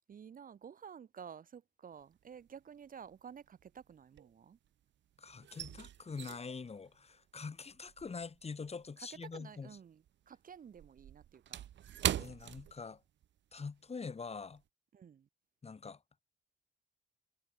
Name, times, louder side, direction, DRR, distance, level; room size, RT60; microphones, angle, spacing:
voice 1, 0.1-4.6 9.0-11.7 14.9-15.3, right 7 dB, 45° right, 1.1 m, -52 dB
sound 1, 2.0-2.6 2.8-4.8 5.1-9.8 10.1-13.4 13.7-13.9 14.3-14.6, right 11 dB, 65° right, 1.2 m, -42 dB
voice 2, 5.2-9.8 12.2-13.0 13.5-14.6 15.6-16.0, left 5 dB, 30° left, 2.8 m, -44 dB
cardioid pair, 90°, 20 cm